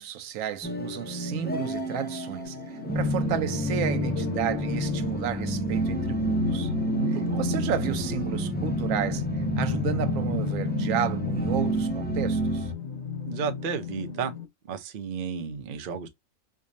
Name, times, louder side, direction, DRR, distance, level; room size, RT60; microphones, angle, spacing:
voice 1, 0.0-6.7 7.4-9.2 9.6-12.7, right 10 dB, 85° right, 1.0 m, -32 dB
sound 1, 0.6-12.7, right 1 dB, 15° left, 0.4 m, -29 dB
sound 2, 2.4-14.5, left 5 dB, 85° left, 1.1 m, -34 dB
voice 2, 7.0-7.4 13.2-14.3 14.6-16.1, right 6 dB, 50° right, 0.7 m, -33 dB
4.7 x 2.2 x 2.5 m
omnidirectional pair, 1.3 m